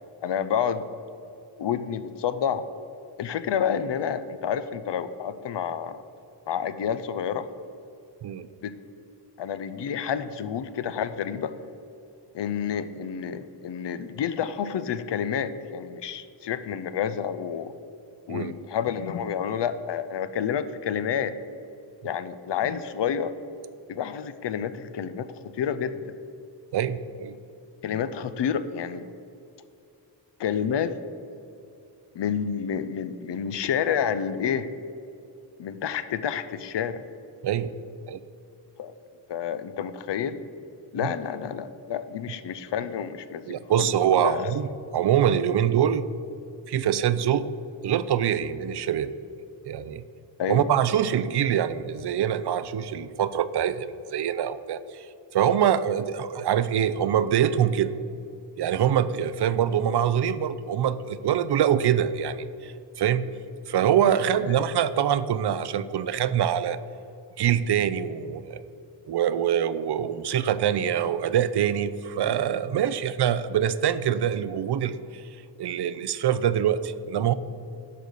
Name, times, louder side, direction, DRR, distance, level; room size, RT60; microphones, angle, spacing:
voice 1, 0.2-0.9 1.6-2.6 3.2-6.0 6.5-7.5 8.6-8.7 9.4-11.5 12.3-17.7 18.3-21.3 22.0-23.3 23.9-26.1 27.8-29.1 30.4-30.9 32.1-34.7 35.6-37.0 38.8-38.9 39.3-40.4 40.9-44.5 50.4-50.7 64.5-64.6, left 8 dB, 75° left, 12 dB, 0.6 m, -29 dB
voice 2, 26.7-27.3 37.4-37.7 38.1-38.2 41.0-41.1 43.5-44.7 44.9-46.0 46.7-47.5 47.8-49.1 49.6-50.0 50.5-57.9 58.6-63.3 63.7-66.8 67.4-68.6 69.1-75.2 75.6-77.3, right 9 dB, 65° right, 14 dB, 0.5 m, -24 dB
11.0 x 4.0 x 6.7 m, 2.7 s
wide cardioid pair, 85°, 43 cm